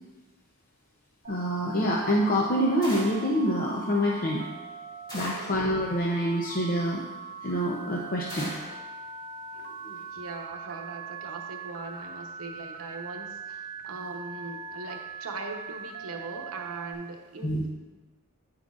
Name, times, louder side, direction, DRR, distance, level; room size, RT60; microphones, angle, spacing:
Telephone, 1.2-16.9, right 5 dB, 45° right, 0.6 m, -41 dB
voice 1, 1.3-4.5 5.1-7.0 7.4-8.5 17.4-17.6, equal, 40° left, -3 dB, 0.6 m, -26 dB
sound 1, 2.8-3.3 5.1-5.6 8.3-8.8, equal, 20° left, 1.9 m, -39 dB
voice 2, 5.3-5.6 9.8-17.7, right 3 dB, 75° right, 2 dB, 0.9 m, -40 dB
9.6 x 6.1 x 2.4 m, 1.2 s
head